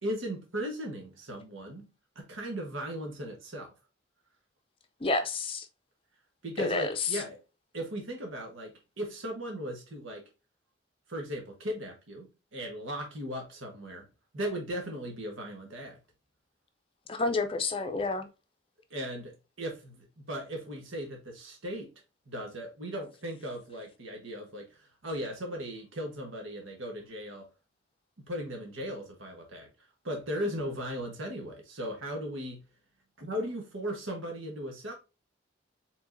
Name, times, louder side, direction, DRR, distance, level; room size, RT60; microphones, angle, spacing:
voice 1, 0.0-1.9 2.1-3.7 6.4-7.4 7.7-10.2 11.1-14.1 14.3-16.0 18.9-21.9 22.3-27.5 28.2-29.7 30.0-32.6 33.2-34.9, equal, 90° right, 1.3 m, -37 dB
voice 2, 5.0-5.7 6.6-7.2 17.1-18.3, left 3 dB, 25° left, 0.5 m, -29 dB
4.9 x 3.8 x 2.6 m
head